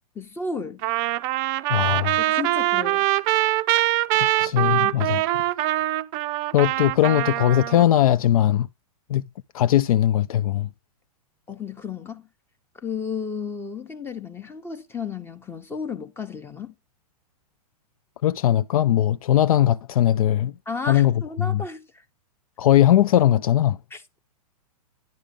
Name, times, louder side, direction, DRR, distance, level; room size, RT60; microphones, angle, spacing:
voice 1, 0.1-0.8 2.2-3.1 11.5-12.3 12.8-16.7 20.7-22.0 23.9-24.2, left 5 dB, 10° left, 0.8 m, -33 dB
Trumpet, 0.8-7.8, right 16 dB, 35° right, 0.5 m, -23 dB
voice 2, 1.7-2.2 4.4-5.2 6.5-8.7 9.1-9.2 9.5-10.7 18.2-20.5 20.9-21.6 22.6-23.8, left 12 dB, 60° left, 0.4 m, -19 dB
10.5 x 3.6 x 5.2 m
hypercardioid pair, 120°, 20 cm